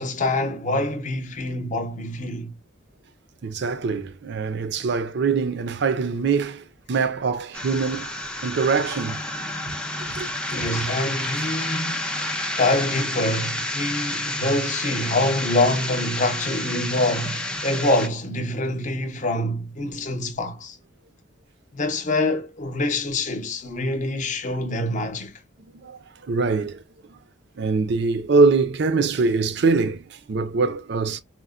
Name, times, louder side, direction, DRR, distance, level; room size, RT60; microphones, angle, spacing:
voice 1, 0.0-2.5 10.5-20.8 21.7-25.3, left 2 dB, 40° left, 0.7 m, -25 dB
voice 2, 3.4-8.2 8.4-9.2 10.1-10.7 11.4-11.5 25.7-26.8 27.1-27.2 27.6-31.2, right 4 dB, 60° right, 0.5 m, -23 dB
sound 1, 7.5-18.1, left 1 dB, 5° left, 0.4 m, -30 dB
4.3 x 2.1 x 2.4 m
head